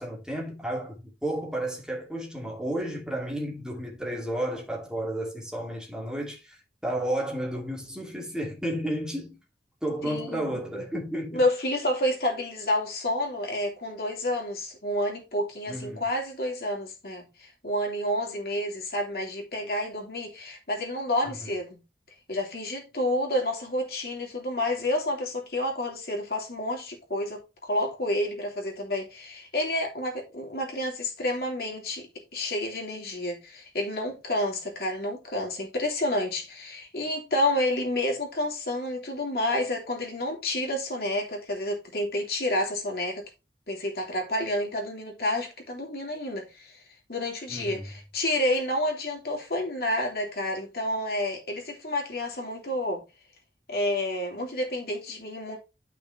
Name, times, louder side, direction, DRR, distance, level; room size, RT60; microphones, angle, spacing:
voice 1, 0.0-9.4 9.8-11.4 15.7-16.0 21.3-21.5 47.5-47.9, right 1 dB, 5° right, 2.5 m, -32 dB
voice 2, 10.0-10.8 11.3-21.8 22.3-43.2 43.7-46.8 47.1-53.0 53.7-55.6, left 1 dB, 60° left, 2.8 m, -29 dB
10.5 x 5.8 x 3.2 m
head